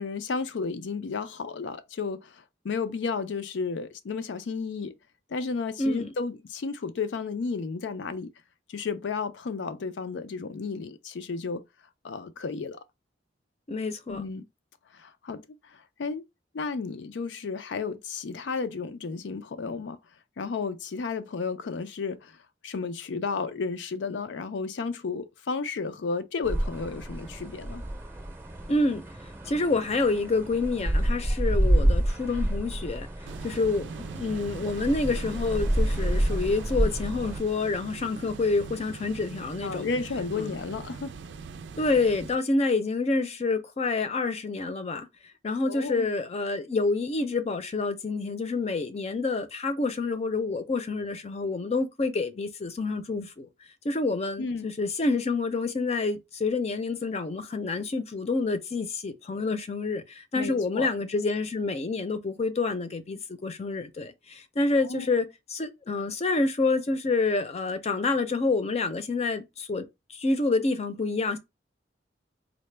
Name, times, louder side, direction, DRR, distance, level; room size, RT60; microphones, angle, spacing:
voice 1, 0.0-4.9 5.3-8.3 8.7-11.6 12.0-12.8 14.1-14.4 14.9-15.4 15.7-16.2 16.5-20.0 20.4-22.4 22.6-27.8 39.6-41.1 45.6-46.1 54.4-54.7 60.4-60.9 64.8-65.1, left 4 dB, 90° left, 0.4 m, -33 dB
voice 2, 5.8-6.1 13.7-14.2 28.7-29.0 29.5-33.1 33.4-39.9 40.4-40.5 41.8-45.1 45.4-53.5 53.8-69.8 70.1-71.4, left 3 dB, 35° left, 0.5 m, -28 dB
sound 1, 26.4-37.4, right 1 dB, 10° right, 0.6 m, -28 dB
sound 2, 33.3-42.3, right 5 dB, 80° right, 0.4 m, -41 dB
3.9 x 2.1 x 3.3 m
head